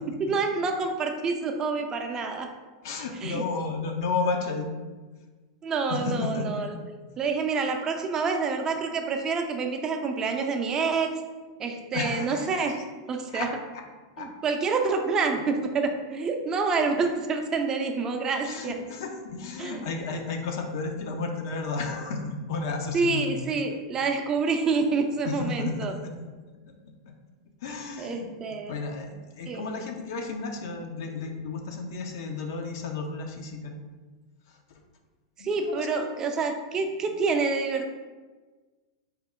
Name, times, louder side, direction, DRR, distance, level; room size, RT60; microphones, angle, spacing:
voice 1, 0.1-2.5 3.2-3.4 5.6-6.8 7.2-11.1 11.6-12.8 13.1-13.5 14.2-18.8 19.6-19.8 22.9-25.9 28.0-28.7 29.5-29.6 35.4-38.0, right 4 dB, 30° right, 5 dB, 0.4 m, -27 dB
voice 2, 2.8-4.7 5.9-6.7 11.9-12.5 13.3-13.5 14.2-14.3 18.4-23.5 25.2-26.1 27.1-27.2 27.6-28.3 28.6-33.7 35.4-36.0, left 4 dB, 70° left, 3 dB, 0.6 m, -32 dB
4.3 x 2.0 x 3.6 m, 1.3 s
hypercardioid pair, 105°, 2 cm